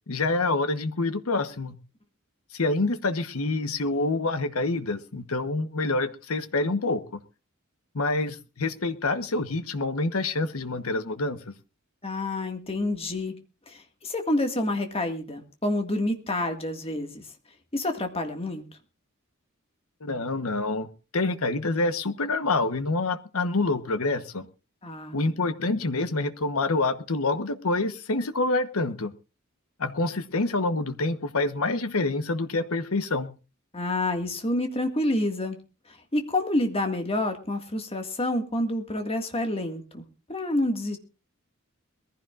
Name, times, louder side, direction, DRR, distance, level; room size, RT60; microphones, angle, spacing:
voice 1, 0.1-1.8 2.5-7.2 7.9-11.4 20.0-24.5 25.1-29.1 29.8-33.3, left 2 dB, 75° left, 11 dB, 1.1 m, -27 dB
voice 2, 12.0-13.4 13.7-17.3 17.7-18.6 24.8-25.2 33.7-35.6 35.9-41.0, left 1 dB, 25° left, 5 dB, 1.9 m, -28 dB
22.0 x 15.0 x 2.5 m, 0.33 s
head